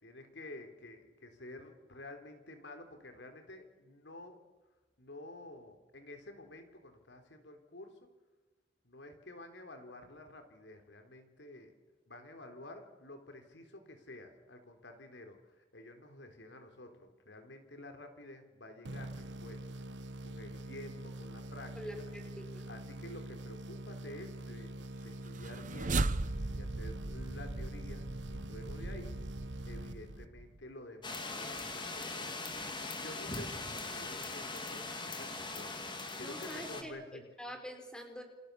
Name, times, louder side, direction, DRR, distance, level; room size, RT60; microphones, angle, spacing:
voice 1, 0.0-4.4 5.0-8.1 8.8-19.6 20.2-22.2 22.7-24.8 25.0-26.0 26.5-29.2 29.7-32.5 33.0-37.2, left 1 dB, 80° left, 6 dB, 3.7 m, -50 dB
sound 1, 18.8-30.6, right 1 dB, 80° right, 1.2 m, -45 dB
voice 2, 21.8-22.7 36.2-36.9 37.4-38.2, equal, 5° left, 4 dB, 4.5 m, -45 dB
sound 2, 25.3-30.6, right 2 dB, 45° right, 0.9 m, -37 dB
sound 3, 31.0-36.8, left 3 dB, 25° left, 3.0 m, -41 dB
29.0 x 24.0 x 7.0 m, 1.1 s
head